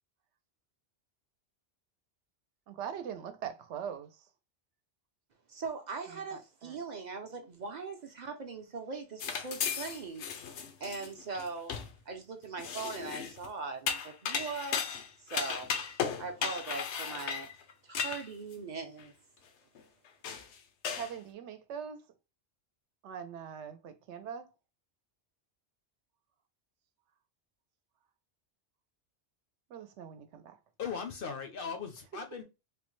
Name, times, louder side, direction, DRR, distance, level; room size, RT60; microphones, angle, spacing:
voice 1, 2.7-4.2 6.1-6.8 20.9-22.0 23.0-24.5 29.7-30.6, right 8 dB, 85° right, 0.9 m, -42 dB
voice 2, 5.5-10.3 10.8-11.7 12.1-15.7 16.2-17.5 17.8-19.1, right 4 dB, 50° right, 0.6 m, -40 dB
sound 1, 9.2-11.9 12.6-13.5 13.9-18.5 19.0-19.1 19.7-19.8 20.2-20.5 20.8-21.1, left 7 dB, 80° left, 0.9 m, -35 dB
voice 3, 30.8-32.4, left 6 dB, 60° left, 0.7 m, -38 dB
3.4 x 2.1 x 3.0 m
omnidirectional pair, 1.2 m